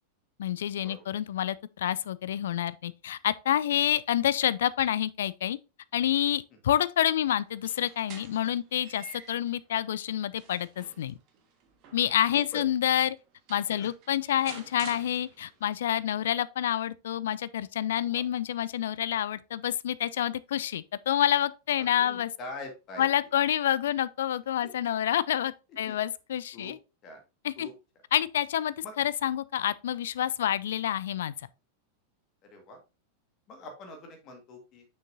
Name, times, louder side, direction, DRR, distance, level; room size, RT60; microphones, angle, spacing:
voice 1, 0.4-5.6 5.9-11.2 11.9-13.2 13.5-22.3 23.0-26.8 27.4-27.7 28.1-31.3, left 11 dB, 60° left, 0.3 m, -28 dB
sound 1, 7.5-9.6 10.1-12.6 13.2-13.3 13.5-15.7, right 6 dB, 40° right, 1.5 m, -50 dB
voice 2, 21.8-23.1 24.6-24.7 25.9-26.0 26.5-26.7 27.0-27.2 27.6-27.7 28.8-28.9 30.4-30.6 32.5-32.8 33.5-34.9, left 2 dB, 35° left, 1.8 m, -44 dB
6.5 x 6.2 x 2.7 m
figure-of-eight pair, 90°, 0 cm